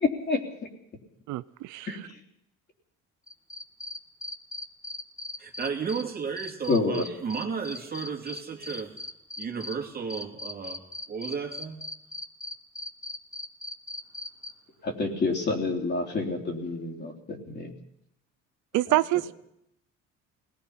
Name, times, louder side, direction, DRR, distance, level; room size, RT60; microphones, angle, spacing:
voice 1, 0.0-0.4 1.9-2.2 6.7-7.0 14.8-17.7, left 3 dB, 35° left, 0 dB, 3.6 m, -28 dB
voice 2, 1.3-1.9 18.7-19.3, right 17 dB, 85° right, 15 dB, 0.7 m, -26 dB
sound 1, 3.3-6.0 6.4-9.7 10.1-14.5, left 2 dB, 10° left, 1.0 m, -38 dB
voice 3, 5.4-8.9 9.4-10.8 11.1-11.8, right 6 dB, 30° right, 3 dB, 2.7 m, -33 dB
24.0 x 19.5 x 5.8 m, 0.78 s
cardioid pair, 125°, 29 cm